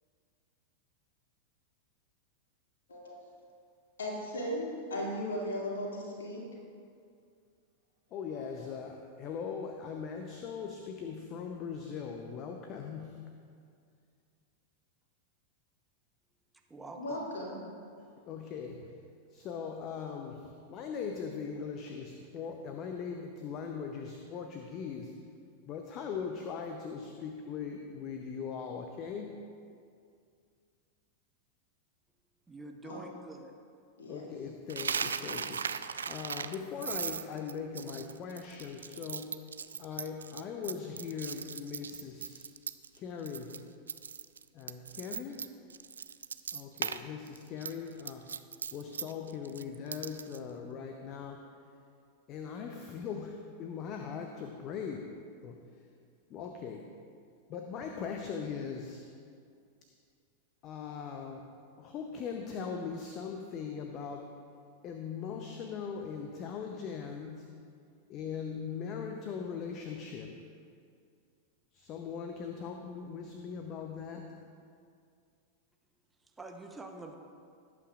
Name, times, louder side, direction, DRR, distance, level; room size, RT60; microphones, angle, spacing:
voice 1, 2.9-3.3 4.0-6.4 8.3-8.6 17.0-17.5 32.9-33.0 34.0-34.3, equal, 65° left, -3 dB, 2.4 m, -37 dB
voice 2, 8.1-13.3 18.2-19.0 19.3-25.1 25.7-29.4 34.1-35.7 36.0-39.3 39.8-42.4 42.9-43.6 44.5-45.4 46.5-48.3 48.7-51.4 52.3-55.1 55.4-55.9 56.3-56.9 57.5-59.0 60.6-61.4 61.8-64.3 64.8-67.5 68.1-70.3 71.7-74.3, left 6 dB, 35° left, 4 dB, 0.7 m, -40 dB
voice 3, 16.7-17.3 32.5-33.5 76.2-77.1, right 2 dB, 10° right, 3 dB, 0.9 m, -46 dB
Coin (dropping), 34.7-43.0 43.3-43.6 43.9-47.0 47.3-50.4, right 6 dB, 70° right, 0.3 m, -38 dB
18.5 x 8.5 x 2.5 m, 2.3 s
figure-of-eight pair, 90°, 0 cm